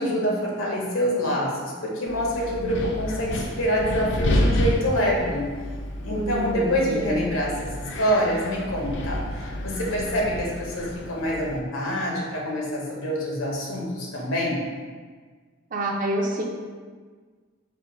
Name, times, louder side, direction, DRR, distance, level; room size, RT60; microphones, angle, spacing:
voice 1, 0.0-5.5 6.0-14.7, equal, 80° left, -3 dB, 0.9 m, -26 dB
Wind, 2.1-11.6, left 1 dB, 60° left, 0.4 m, -30 dB
voice 2, 6.1-7.2 15.7-16.4, right 1 dB, 40° right, 0 dB, 0.5 m, -27 dB
4.3 x 2.2 x 4.2 m, 1.5 s
head